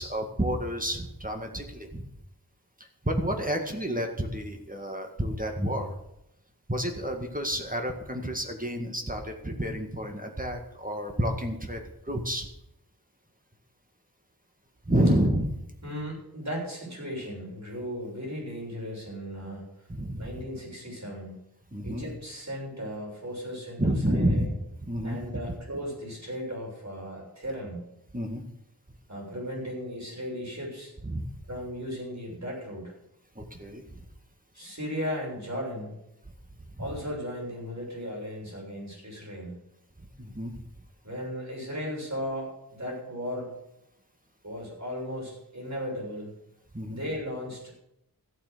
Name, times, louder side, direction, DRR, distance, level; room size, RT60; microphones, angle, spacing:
voice 1, 0.0-2.1 3.0-5.9 6.7-12.5 14.9-15.5 19.9-20.3 21.7-22.0 23.8-24.5 24.9-25.2 28.1-28.4 31.0-31.3 33.4-33.8 36.8-36.9 40.2-40.6 46.7-47.0, right 1 dB, 20° right, 3 dB, 1.9 m, -29 dB
voice 2, 15.8-19.6 20.2-21.4 21.8-24.5 25.0-27.8 29.1-30.9 31.5-33.0 34.5-36.0 36.8-39.6 41.0-43.5 44.4-46.4 46.9-47.6, equal, 50° right, -2 dB, 6.9 m, -36 dB
14.5 x 8.7 x 6.8 m, 0.83 s
wide cardioid pair, 60°, 37 cm